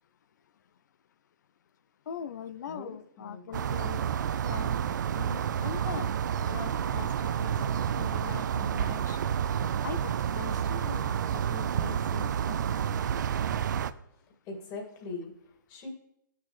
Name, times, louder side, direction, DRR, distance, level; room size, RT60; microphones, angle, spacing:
voice 1, 2.1-4.0 4.4-4.8 5.6-6.1 6.3-9.2 9.8-12.9, left 8 dB, 55° left, 14 dB, 0.6 m, -42 dB
voice 2, 2.7-3.4 4.8-5.4 5.9-6.1 14.4-15.9, left 3 dB, 30° left, 2 dB, 2.2 m, -42 dB
sound 1, 3.5-13.9, right 8 dB, 60° right, 0.5 m, -30 dB
12.5 x 6.6 x 3.2 m, 0.77 s
hypercardioid pair, 140°, 11 cm